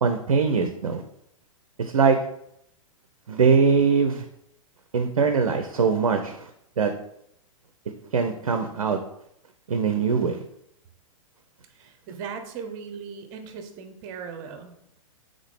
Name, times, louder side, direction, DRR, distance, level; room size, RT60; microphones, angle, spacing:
voice 1, 0.0-1.0 1.8-2.2 3.3-4.3 4.9-6.5 6.8-6.9 8.1-9.0 9.7-10.4, right 5 dB, 75° right, 6 dB, 0.5 m, -22 dB
voice 2, 11.7-14.7, right 6 dB, 35° right, 6 dB, 0.7 m, -38 dB
3.6 x 3.6 x 3.5 m, 0.73 s
figure-of-eight pair, 110°, 18 cm